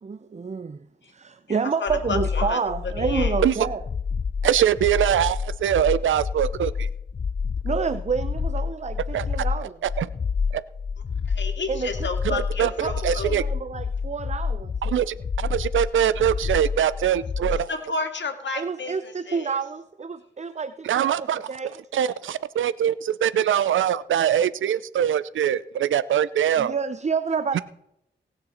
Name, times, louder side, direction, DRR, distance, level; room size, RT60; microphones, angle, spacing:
voice 1, 0.0-3.8 7.6-9.8 11.7-14.7 18.6-21.8 26.6-27.6, right 5 dB, 35° right, 13 dB, 0.6 m, -29 dB
voice 2, 1.5-2.6 3.0-3.4 11.3-13.4 17.7-19.5, left 3 dB, 70° left, 6 dB, 2.2 m, -31 dB
sound 1, 1.9-17.7, left 5 dB, 35° left, 0.4 m, -29 dB
voice 3, 4.4-6.9 9.1-9.3 9.8-10.1 10.5-10.6 12.2-13.4 14.8-17.7 20.8-21.5 21.9-26.7 27.5-27.6, right 10 dB, 85° right, 18 dB, 0.6 m, -23 dB
18.5 x 6.7 x 4.3 m, 0.77 s
cardioid pair, 45°, 20 cm